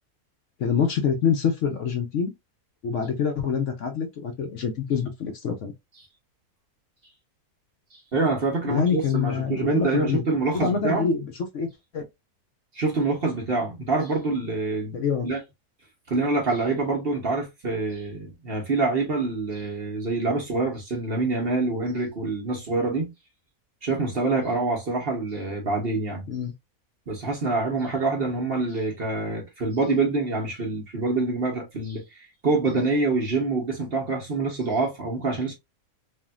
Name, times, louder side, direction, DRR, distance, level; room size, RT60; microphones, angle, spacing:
voice 1, 0.6-2.3 2.8-5.7 8.6-10.2 10.5-11.7 11.9-12.1 14.9-15.3 26.3-26.5, left 6 dB, 65° left, 0.8 m, -26 dB
voice 2, 7.9-11.1 12.7-15.0 15.2-15.4 16.1-23.1 23.8-26.2 27.1-35.5, right 3 dB, 45° right, 1.0 m, -26 dB
3.4 x 2.4 x 2.3 m
omnidirectional pair, 1.6 m